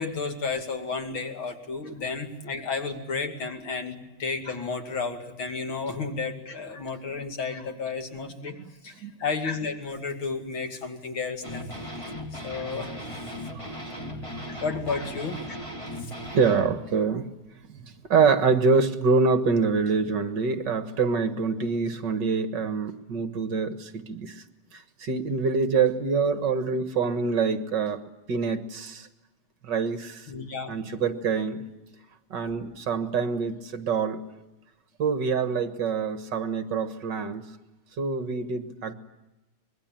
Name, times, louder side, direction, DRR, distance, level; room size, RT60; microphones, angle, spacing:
voice 1, 0.0-8.6 8.8-8.9 9.2-11.7 12.3-13.0 14.6-15.4 16.0-16.1 30.3-30.8, left 4 dB, 80° left, 5 dB, 3.3 m, -32 dB
sound 1, 11.4-16.7, left 1 dB, 15° left, 3.5 m, -37 dB
voice 2, 14.1-14.4 16.3-17.3 17.8-24.4 24.7-28.0 28.3-29.1 29.6-30.3 30.7-31.7 32.3-34.2 35.0-37.5 38.0-38.9, right 5 dB, 60° right, 10 dB, 2.1 m, -25 dB
24.5 x 21.5 x 8.9 m, 1.0 s
omnidirectional pair, 2.2 m